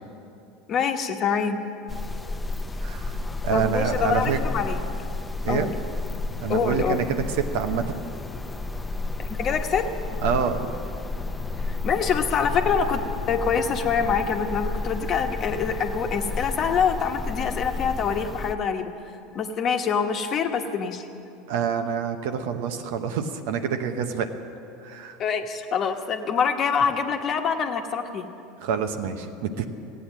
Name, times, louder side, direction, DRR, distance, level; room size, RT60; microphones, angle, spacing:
voice 1, 0.7-1.6 3.5-4.8 5.5-5.7 6.5-7.0 9.2-9.9 11.8-18.9 19.3-21.1 25.2-28.3, left 6 dB, 45° left, 5 dB, 1.1 m, -25 dB
sound 1, 1.9-18.5, left 3 dB, 15° left, 0.7 m, -31 dB
voice 2, 2.8-4.4 5.4-5.7 6.4-8.0 10.2-10.7 21.5-24.3 24.8-25.2 28.6-29.6, right 7 dB, 75° right, 7 dB, 0.9 m, -27 dB
15.5 x 8.6 x 7.4 m, 2.7 s
hypercardioid pair, 95°, 0 cm